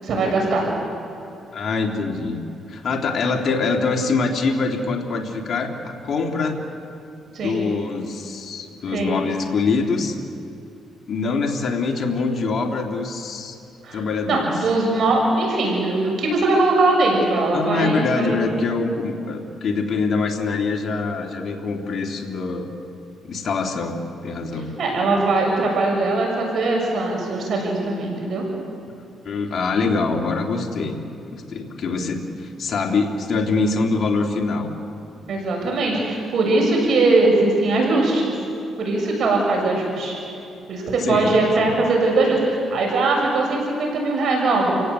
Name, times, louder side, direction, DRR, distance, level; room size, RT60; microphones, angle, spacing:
voice 1, 0.0-0.7 7.3-7.6 8.9-9.1 13.8-14.0 14.3-18.4 24.8-28.4 35.3-38.3 38.8-40.2 40.7-44.7, right 2 dB, 60° right, 0 dB, 6.9 m, -20 dB
voice 2, 1.5-2.4 2.7-6.6 7.4-10.1 11.1-13.6 13.9-14.6 17.5-22.7 23.2-24.8 29.2-31.0 31.3-34.7 41.0-41.7, left 4 dB, 55° left, 1 dB, 3.0 m, -24 dB
29.5 x 17.5 x 8.3 m, 2.7 s
cardioid pair, 90°, 0 cm